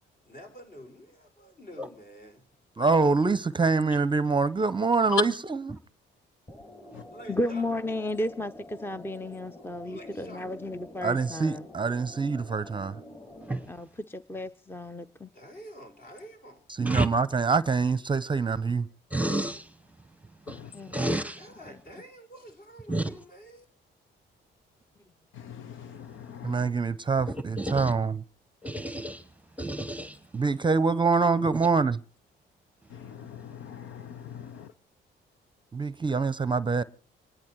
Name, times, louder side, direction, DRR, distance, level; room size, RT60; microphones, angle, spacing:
voice 1, 0.2-2.4 6.8-7.6 9.8-10.5 15.3-16.6 21.3-23.7, equal, 45° left, 5.9 m, -48 dB
voice 2, 2.8-5.2 11.0-13.0 16.7-18.9 26.4-28.2 30.3-32.0 35.7-36.8, right 4 dB, 25° right, 0.7 m, -25 dB
sound 1, 6.5-13.7, left 1 dB, 30° left, 7.9 m, -47 dB
voice 3, 7.3-11.6 13.7-15.3 20.7-21.0, left 1 dB, 10° left, 0.7 m, -33 dB
voice 4, 19.1-19.7 20.5-21.4 22.9-23.1 27.6-27.9 28.6-29.2 29.6-30.2 31.5-31.6, right 1 dB, 5° right, 1.1 m, -30 dB
voice 5, 25.3-26.7 32.9-34.7, left 9 dB, 85° left, 0.9 m, -38 dB
26.5 x 11.0 x 4.6 m
cardioid pair, 90°, 20 cm